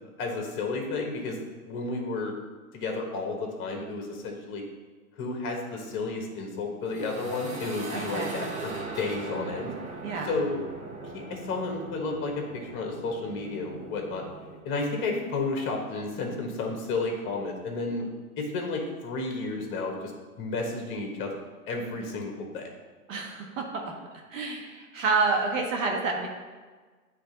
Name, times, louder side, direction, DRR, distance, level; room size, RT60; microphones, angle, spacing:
voice 1, 0.2-1.4 1.6-2.4 2.7-4.6 5.2-9.7 10.2-10.6 11.1-14.2 14.6-18.1 18.4-20.1 20.4-21.3 21.7-22.7, left 3 dB, 25° left, 2 dB, 1.2 m, -32 dB
sound 1, 6.8-14.6, right 3 dB, 15° right, 0.9 m, -40 dB
voice 2, 7.9-8.3 10.0-10.3 23.1-23.8 24.3-26.3, right 4 dB, 60° right, 1 dB, 1.4 m, -28 dB
9.7 x 3.3 x 4.0 m, 1.4 s
hypercardioid pair, 120°, 44 cm